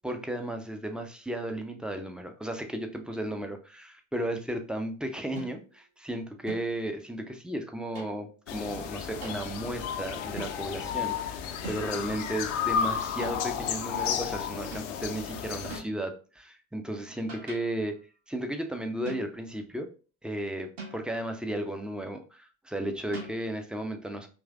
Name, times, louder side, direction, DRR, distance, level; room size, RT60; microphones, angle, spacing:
voice 1, 0.0-18.0 18.3-19.9 20.2-24.3, right 1 dB, ahead, 5 dB, 0.5 m, -34 dB
sound 1, 5.4-5.8 6.5-6.8 7.9-8.3 9.2-9.5 10.4-10.7 11.6-12.1 13.2-13.6 14.7-15.0 15.7-16.0 17.0-17.8 19.0-19.6 20.8-21.3 23.1-23.4, right 3 dB, 65° right, 1.8 m, -43 dB
sound 2, 8.5-15.8, left 8 dB, 65° left, 0.6 m, -32 dB
4.6 x 3.1 x 2.4 m, 0.35 s
figure-of-eight pair, 60°, 40 cm